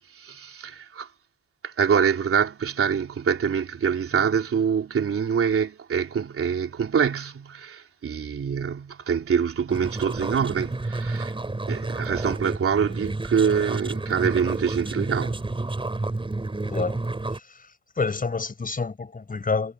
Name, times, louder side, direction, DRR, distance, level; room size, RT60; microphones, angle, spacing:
voice 1, 0.1-1.1 1.6-11.3 11.7-15.5, right 7 dB, 45° right, 3.3 m, -25 dB
sound 1, 9.7-17.4, right 2 dB, 15° right, 5.6 m, -30 dB
voice 2, 16.6-17.0 17.5-17.6 18.0-19.7, left 4 dB, 30° left, 5.1 m, -28 dB
cardioid pair, 90°, 30 cm